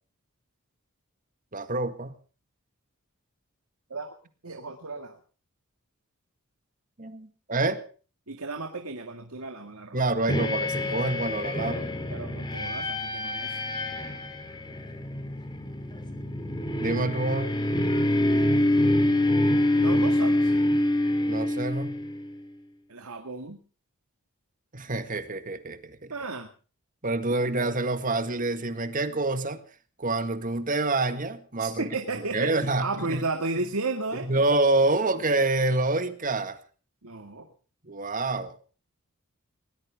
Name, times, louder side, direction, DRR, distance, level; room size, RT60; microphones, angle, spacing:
voice 1, 1.5-2.1 7.0-7.8 9.9-11.9 16.8-17.6 21.3-22.0 24.7-26.1 27.0-29.6 30.0-33.2 34.3-36.6 37.8-38.5, right 2 dB, 40° right, 10 dB, 1.8 m, -27 dB
voice 2, 4.4-5.2 8.3-10.0 11.6-11.8 12.1-13.6 19.8-20.5 22.9-23.6 26.1-26.5 31.6-34.4 37.0-37.5, right 3 dB, 90° right, 6 dB, 2.1 m, -34 dB
sound 1, 10.3-22.3, left 1 dB, 20° left, 3.1 m, -26 dB
21.0 x 19.0 x 3.6 m, 0.39 s
head